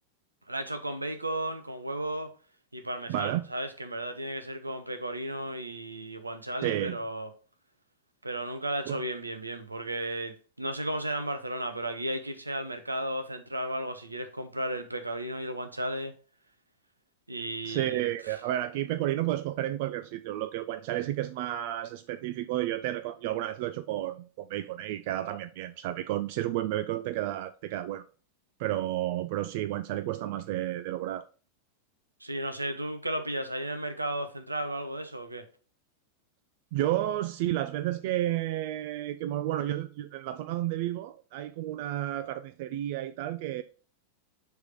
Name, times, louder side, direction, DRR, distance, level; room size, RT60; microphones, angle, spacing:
voice 1, 0.5-2.3 2.7-7.3 8.2-16.1 17.3-18.4 32.2-35.5, right 1 dB, 85° right, 0.9 m, -34 dB
voice 2, 3.1-3.5 6.6-7.0 8.9-9.0 17.6-28.0 28.6-31.3 36.7-43.6, right 13 dB, 50° right, 0.3 m, -31 dB
6.5 x 3.6 x 4.8 m
figure-of-eight pair, 90°, 0 cm